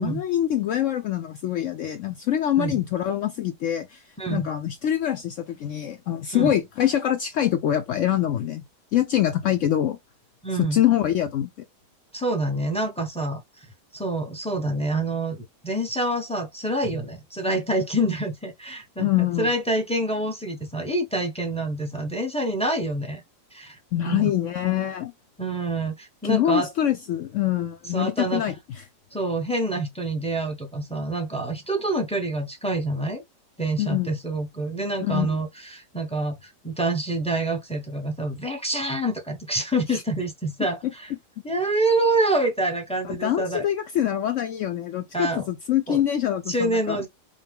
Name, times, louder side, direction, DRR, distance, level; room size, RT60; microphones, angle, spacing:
voice 1, 0.0-4.0 4.3-8.6 8.9-10.0 10.7-11.5 19.0-19.5 23.9-25.1 26.2-28.8 33.8-34.1 35.0-35.4 39.9-40.0 43.0-47.0, left 11 dB, 90° left, 0.6 m, -24 dB
voice 2, 10.4-10.8 12.1-13.7 13.9-23.2 23.5-23.8 24.0-24.3 25.4-26.7 27.9-28.4 29.1-33.2 33.6-41.1 41.4-43.6 45.1-45.4 45.9-46.0 46.5-47.1, right 2 dB, 5° left, 0.5 m, -27 dB
5.2 x 2.2 x 3.5 m
omnidirectional pair, 1.9 m